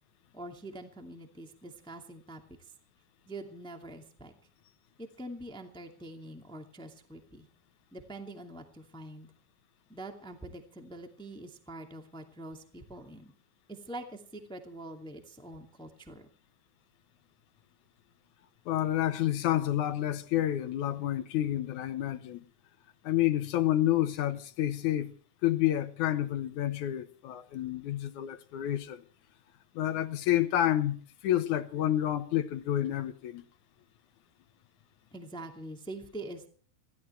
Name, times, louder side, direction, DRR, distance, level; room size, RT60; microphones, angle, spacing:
voice 1, 0.3-2.7 3.2-4.3 5.0-7.5 7.9-9.3 9.9-13.3 13.7-16.3 35.1-36.5, right 1 dB, ahead, 1.4 m, -44 dB
voice 2, 18.7-22.5 23.0-25.1 25.4-29.0 29.8-33.4, left 13 dB, 65° left, 2.3 m, -29 dB
29.0 x 13.5 x 3.3 m
omnidirectional pair, 4.2 m